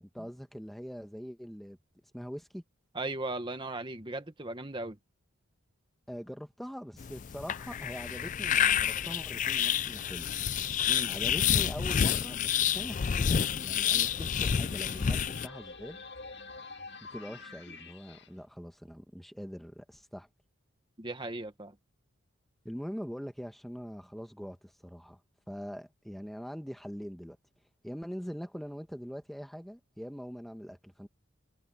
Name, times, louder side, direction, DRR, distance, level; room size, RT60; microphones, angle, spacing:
voice 1, 0.0-1.8 2.1-2.6 6.1-10.3 11.1-16.0 17.1-20.3 22.6-25.2 25.5-27.4 27.8-31.1, equal, ahead, 1.2 m, -42 dB
voice 2, 2.9-5.0 10.9-11.1 21.0-21.8, right 2 dB, 25° right, 1.3 m, -37 dB
sound 1, 7.0-15.5, left 8 dB, 40° left, 0.4 m, -29 dB
sound 2, 12.8-18.3, left 4 dB, 55° left, 2.2 m, -48 dB
head